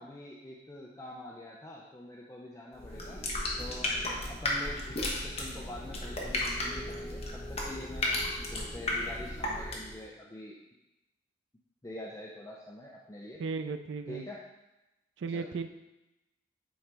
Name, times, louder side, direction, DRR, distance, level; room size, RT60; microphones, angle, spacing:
voice 1, 0.0-3.2 3.6-10.6 11.8-13.4 14.1-14.4 15.3-15.5, left 1 dB, 20° left, -3 dB, 0.5 m, -45 dB
sound 1, 2.7-10.0, left 1 dB, 35° left, 1.1 m, -34 dB
voice 2, 13.4-14.2 15.2-15.8, right 4 dB, 80° right, 9 dB, 0.4 m, -35 dB
8.6 x 3.8 x 3.4 m, 0.96 s
head